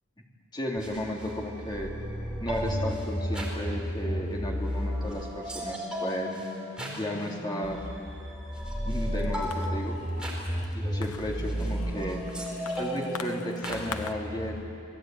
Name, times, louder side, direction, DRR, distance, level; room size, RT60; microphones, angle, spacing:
voice 1, 0.5-1.9 2.4-6.4 6.9-7.9 8.8-10.0 10.7-12.2 12.8-14.6, equal, 20° left, -2 dB, 3.3 m, -34 dB
sound 1, 0.8-14.5, equal, 5° right, 4.5 m, -33 dB
sound 2, 9.1-14.1, left 5 dB, 80° left, 1.1 m, -44 dB
28.0 x 20.0 x 9.3 m, 2.7 s
head